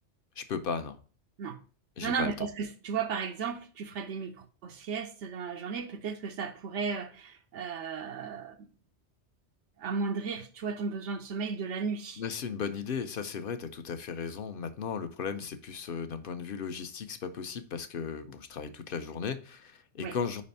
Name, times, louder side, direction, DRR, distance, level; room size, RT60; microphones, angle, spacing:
voice 1, 0.4-1.0 2.0-2.5 12.2-20.4, left 6 dB, 55° left, 0.8 m, -36 dB
voice 2, 2.0-8.7 9.8-12.2 20.0-20.1, right 5 dB, 85° right, 1.0 m, -35 dB
5.2 x 4.2 x 5.3 m
omnidirectional pair, 1.2 m